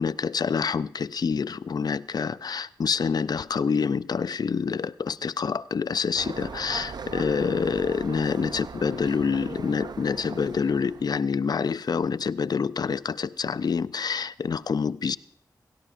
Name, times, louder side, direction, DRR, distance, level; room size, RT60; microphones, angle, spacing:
voice 1, 0.0-15.2, left 5 dB, 60° left, 0.4 m, -27 dB
sound 1, 6.2-11.3, right 5 dB, 65° right, 0.5 m, -39 dB
17.5 x 17.0 x 2.5 m
cardioid pair, 40°, 8 cm